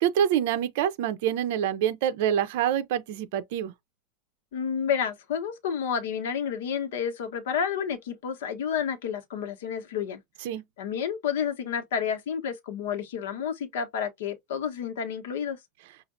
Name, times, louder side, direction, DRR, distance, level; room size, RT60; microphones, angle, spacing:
voice 1, 0.0-3.7 10.4-10.6, right 10 dB, 60° right, 0.6 m, -26 dB
voice 2, 4.5-10.2 10.8-15.6, left 7 dB, 75° left, 1.1 m, -30 dB
5.5 x 2.5 x 2.5 m
supercardioid pair, 160°, 0 cm